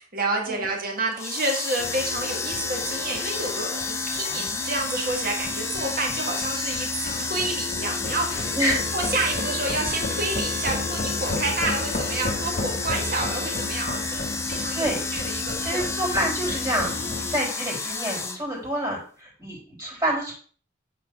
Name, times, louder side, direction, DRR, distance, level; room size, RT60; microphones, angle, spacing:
voice 1, 0.0-8.5 8.9-16.3, right 2 dB, 50° right, 1 dB, 1.6 m, -29 dB
sound 1, 1.1-18.4, left 4 dB, 15° left, 0.7 m, -31 dB
sound 2, 1.8-17.4, left 2 dB, 45° left, 0.9 m, -34 dB
voice 2, 15.6-20.3, equal, 20° right, -3 dB, 3.2 m, -27 dB
8.0 x 3.9 x 4.6 m, 0.43 s
head